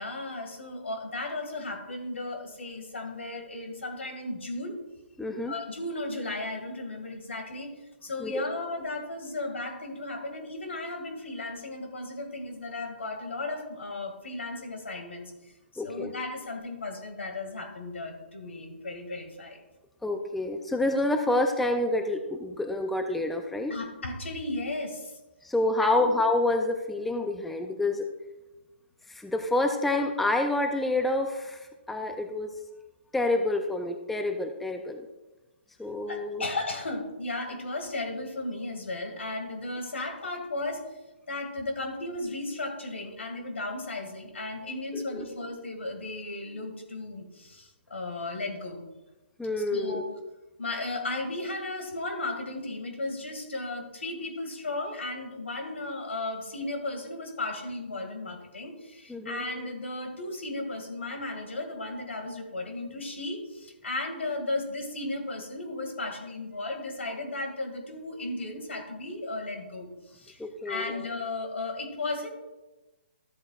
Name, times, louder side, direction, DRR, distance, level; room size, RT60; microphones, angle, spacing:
voice 1, 0.0-4.8 5.5-7.7 8.0-15.3 15.8-19.6 23.7-25.1 25.8-26.1 36.1-40.8 41.3-48.9 49.7-50.0 50.6-72.3, left 2 dB, 85° left, 4 dB, 2.0 m, -35 dB
voice 2, 5.2-5.5 8.2-8.5 15.8-16.1 20.0-23.7 25.4-28.1 29.1-32.5 33.1-35.1 35.8-36.4 44.9-45.2 49.4-50.1 59.1-59.4 70.4-70.9, left 2 dB, ahead, 5 dB, 0.4 m, -28 dB
13.5 x 7.8 x 2.4 m, 1.1 s
hypercardioid pair, 150°, 6 cm